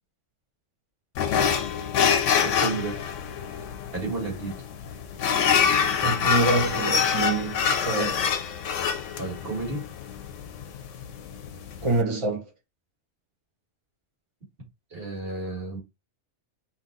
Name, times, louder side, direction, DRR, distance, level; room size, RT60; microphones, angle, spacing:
sound 1, 1.2-12.0, left 7 dB, 85° left, 1.0 m, -26 dB
voice 1, 2.4-3.0 3.9-4.6 9.2-9.9 14.9-15.8, right 3 dB, 55° right, 2.1 m, -32 dB
voice 2, 6.0-8.3 11.8-12.5, right 2 dB, 30° right, 0.9 m, -26 dB
3.9 x 2.8 x 3.8 m
omnidirectional pair, 1.2 m